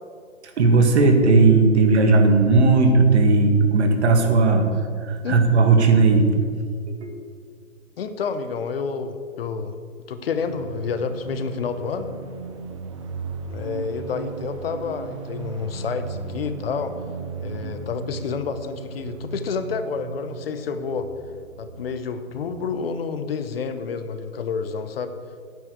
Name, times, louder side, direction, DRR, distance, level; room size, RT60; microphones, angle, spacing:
voice 1, 0.6-4.7 5.0-6.3 6.9-7.2, right 3 dB, 50° right, 5 dB, 1.9 m, -16 dB
voice 2, 8.0-9.7 10.1-12.1 13.5-16.9 17.4-21.1 21.6-25.1, left 5 dB, 45° left, 10 dB, 0.8 m, -29 dB
sound 1, 10.5-22.9, right 4 dB, 25° right, 0.5 m, -36 dB
9.2 x 7.4 x 8.0 m, 2.2 s
figure-of-eight pair, 130°, 41 cm